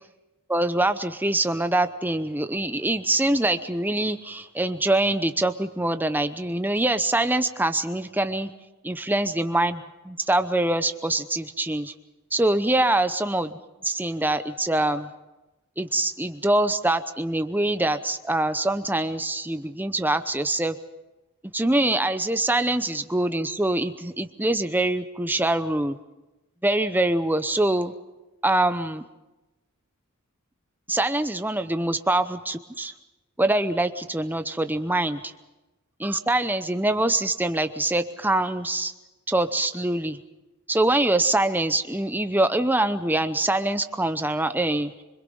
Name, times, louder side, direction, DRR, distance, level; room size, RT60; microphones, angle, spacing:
voice 1, 0.5-8.5 8.8-11.9 12.3-15.1 15.8-20.8 21.5-26.0 26.6-27.9 28.4-29.0 30.9-32.9 33.4-35.2 36.0-38.9 39.3-40.2 40.7-44.9, right 1 dB, 10° right, 10 dB, 0.8 m, -24 dB
25.5 x 22.0 x 5.5 m, 1.0 s
head